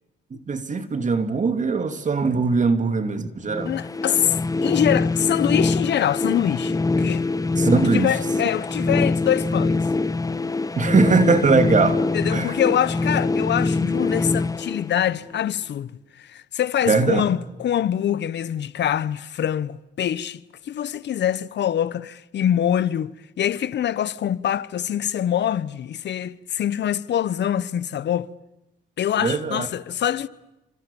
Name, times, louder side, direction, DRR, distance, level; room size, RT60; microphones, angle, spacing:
voice 1, 0.3-3.7 7.6-8.1 10.8-12.0 12.3-12.5 16.9-17.2 29.2-29.7, right 4 dB, 40° right, 2.6 m, -21 dB
sound 1, 3.5-15.4, left 3 dB, 15° left, 1.1 m, -24 dB
voice 2, 3.6-4.4 4.6-7.3 7.7-9.9 12.1-23.1 23.4-28.3 29.0-30.3, left 10 dB, 60° left, 1.1 m, -24 dB
29.0 x 26.5 x 7.1 m
cardioid pair, 90°, 20 cm